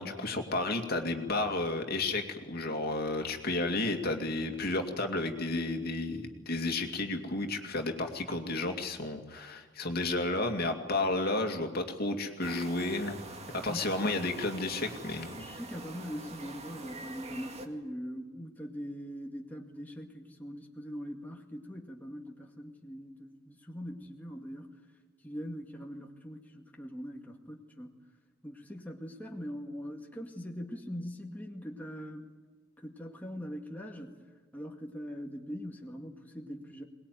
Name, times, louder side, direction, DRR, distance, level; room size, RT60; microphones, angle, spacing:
voice 1, 0.0-15.5, left 2 dB, 55° left, 4 dB, 2.5 m, -32 dB
sound 1, 12.4-17.7, right 2 dB, 35° right, 2.0 m, -45 dB
voice 2, 15.4-24.7 25.2-28.0 28.4-32.3 32.8-34.1 34.5-36.8, equal, 10° left, 1 dB, 2.0 m, -42 dB
22.5 x 20.5 x 9.4 m, 1.4 s
head